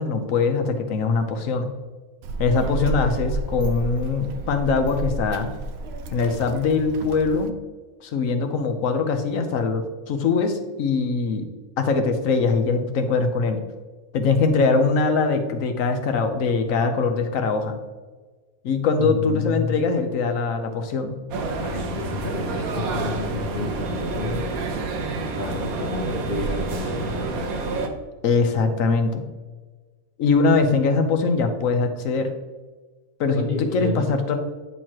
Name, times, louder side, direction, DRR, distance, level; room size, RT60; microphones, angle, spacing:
voice 1, 0.0-1.7 2.4-5.5 6.1-7.5 8.0-11.5 11.8-13.6 14.1-17.8 18.6-21.1 28.2-29.3 30.2-32.3 33.2-34.4, left 4 dB, 70° left, 7 dB, 1.2 m, -22 dB
Child speech kid speaking, 2.2-7.5, right 2 dB, 60° right, 0.7 m, -31 dB
voice 2, 19.0-20.0 21.5-24.5 25.4-27.5 33.3-34.1, left 3 dB, 45° left, 1 dB, 1.0 m, -30 dB
sound 1, 21.3-27.9, right 3 dB, 80° right, 1.3 m, -28 dB
9.8 x 4.6 x 2.9 m, 1.3 s
omnidirectional pair, 1.5 m